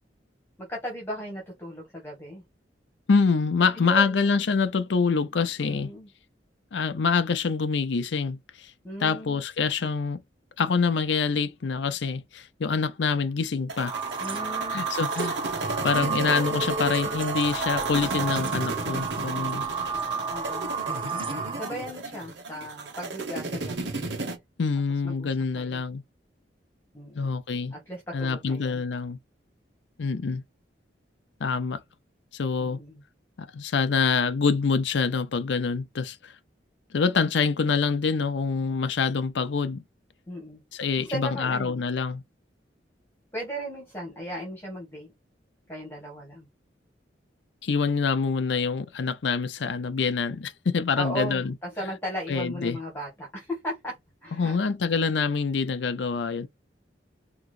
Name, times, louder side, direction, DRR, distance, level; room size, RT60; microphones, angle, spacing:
voice 1, 0.6-2.4 3.8-4.1 5.6-6.1 8.8-9.4 14.2-14.8 20.3-20.7 21.6-24.0 25.0-25.8 26.9-27.3 27.7-28.8 32.6-33.0 40.3-40.6 41.0-41.8 43.3-45.1 45.7-46.5 51.0-54.6, right 1 dB, 15° left, 1.8 m, -36 dB
voice 2, 3.1-5.9 6.7-8.7 9.0-10.2 10.6-14.0 14.7-15.4 15.8-19.6 24.6-26.0 27.2-27.7 28.1-29.2 30.0-30.4 31.4-31.8 32.3-32.8 33.4-36.4 36.9-39.8 40.7-42.2 47.6-51.5 52.3-52.8 54.4-56.5, left 5 dB, 80° left, 0.5 m, -26 dB
sound 1, 13.7-24.4, right 2 dB, 75° right, 1.3 m, -33 dB
sound 2, 13.8-21.8, right 6 dB, 30° right, 0.7 m, -32 dB
4.7 x 3.0 x 2.5 m
head